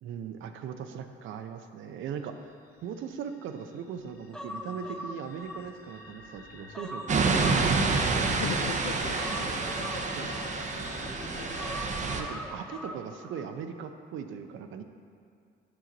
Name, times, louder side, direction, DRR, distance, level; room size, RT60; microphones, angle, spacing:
voice 1, 0.0-2.5 2.8-8.3 10.1-10.3 12.1-14.8, right 7 dB, 80° right, 8 dB, 0.5 m, -39 dB
sound 1, 2.5-11.7, left 2 dB, 55° left, 1.8 m, -46 dB
Human voice, 4.3-6.1 6.5-8.5 9.2-10.9 11.6-13.5 13.8-13.9, left 1 dB, 5° left, 0.5 m, -42 dB
sound 2, 7.1-12.2, right 4 dB, 35° right, 0.6 m, -28 dB
voice 2, 8.3-9.9 10.2-11.6, left 8 dB, 80° left, 6 dB, 0.4 m, -40 dB
7.6 x 5.9 x 3.9 m, 2.3 s
cardioid pair, 90°, 20 cm